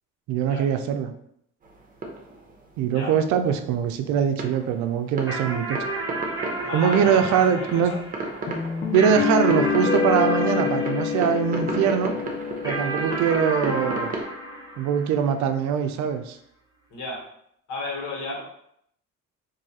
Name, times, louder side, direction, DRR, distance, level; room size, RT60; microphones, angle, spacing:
voice 1, 0.3-1.1 2.8-5.8 6.7-7.9 8.9-12.1 12.6-14.1 14.8-16.4, right 7 dB, 70° right, 8 dB, 0.5 m, -22 dB
sound 1, 1.6-3.2 4.2-14.2, right 2 dB, 30° right, 0.8 m, -34 dB
sound 2, 5.3-12.0 12.6-15.5, right 2 dB, 10° right, 1.4 m, -32 dB
voice 2, 6.6-8.0 16.9-17.2 17.7-18.4, left 2 dB, 75° left, -3 dB, 1.4 m, -33 dB
sound 3, 8.5-14.2, left 7 dB, 40° left, 0.6 m, -27 dB
2.6 x 2.4 x 4.1 m, 0.72 s
cardioid pair, 95°, 30 cm